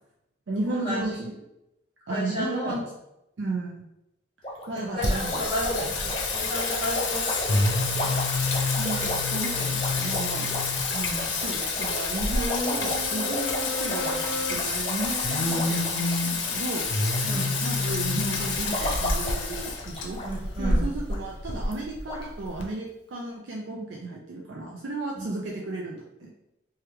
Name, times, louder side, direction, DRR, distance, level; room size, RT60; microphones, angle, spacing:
voice 1, 0.5-1.3 2.1-2.8 3.4-3.9 4.7-5.4 8.8-10.5 11.4-20.2 20.6-26.3, right 2 dB, 75° right, -2 dB, 0.4 m, -34 dB
voice 2, 2.1-2.8 4.7-8.2 10.9-11.3 17.2-17.6 20.2-20.9 25.1-25.3, equal, 25° right, -9 dB, 1.2 m, -32 dB
sound 1, 4.4-17.2 17.5-17.9 18.4-20.3 20.6-20.7 21.1-21.2 21.7-21.8 22.1-22.2, left 1 dB, 30° left, 0.5 m, -35 dB
Singing, 5.0-22.6, left 3 dB, 90° left, 0.6 m, -27 dB
2.9 x 2.3 x 3.4 m, 0.87 s
head